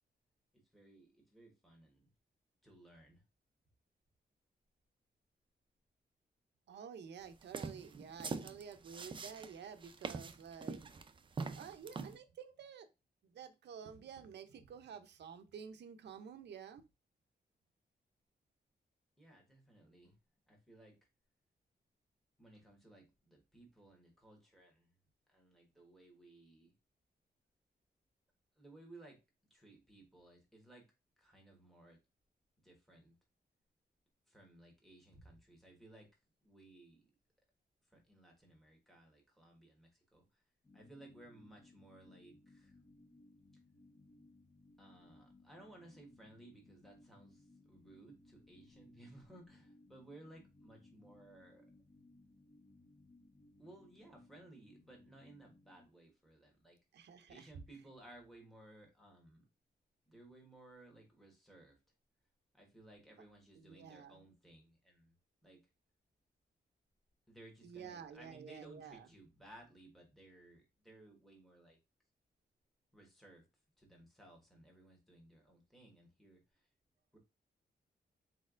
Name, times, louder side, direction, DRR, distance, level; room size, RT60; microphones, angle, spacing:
voice 1, 0.5-2.1 2.6-3.2 19.2-20.2 20.5-21.0 22.4-24.9 25.3-26.7 28.6-29.2 29.5-30.9 31.2-32.0 32.6-33.1 34.3-36.1 36.4-37.1 37.8-40.5 40.7-42.8 44.8-51.7 53.6-56.8 57.3-59.5 60.1-61.8 62.5-65.1 65.4-65.6 67.3-71.8 72.9-73.4 73.8-76.7 77.1-77.2, right 2 dB, ahead, 0 dB, 1.2 m, -59 dB
voice 2, 6.7-10.8 11.6-12.9 13.3-16.8 56.9-57.5 63.6-64.2 67.6-69.1, right 7 dB, 80° right, 8 dB, 0.6 m, -51 dB
sound 1, 7.4-12.2, right 4 dB, 30° right, 0.4 m, -43 dB
sound 2, 40.6-55.9, left 2 dB, 25° left, 0.6 m, -64 dB
4.3 x 4.0 x 2.4 m, 0.26 s
wide cardioid pair, 150°, 17 cm